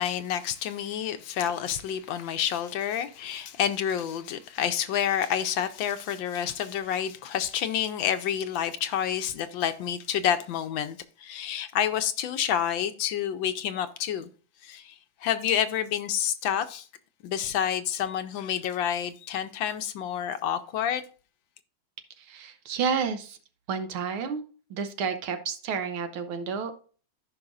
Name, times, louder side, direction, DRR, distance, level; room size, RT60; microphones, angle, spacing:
voice 1, 0.0-14.3 14.6-16.9 17.2-21.0, left 9 dB, 75° left, 1.3 m, -29 dB
voice 2, 22.2-23.4 23.7-24.4 24.7-26.7, right 6 dB, 75° right, 1.8 m, -30 dB
14.5 x 5.5 x 2.5 m
omnidirectional pair, 2.3 m